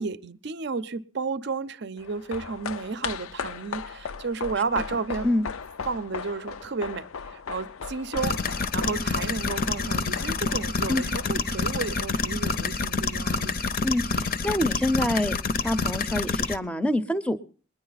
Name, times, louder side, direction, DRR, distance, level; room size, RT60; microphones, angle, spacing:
voice 1, 0.0-5.3 5.9-8.4 8.7-13.6, right 4 dB, 55° right, 0.5 m, -32 dB
sound 1, 2.0-12.6 12.8-12.9, left 6 dB, 85° left, 0.5 m, -38 dB
sound 2, 8.2-16.6, left 4 dB, 45° left, 0.7 m, -28 dB
voice 2, 13.8-15.3 15.6-17.4, left 1 dB, 5° left, 0.6 m, -26 dB
21.0 x 10.5 x 4.0 m
head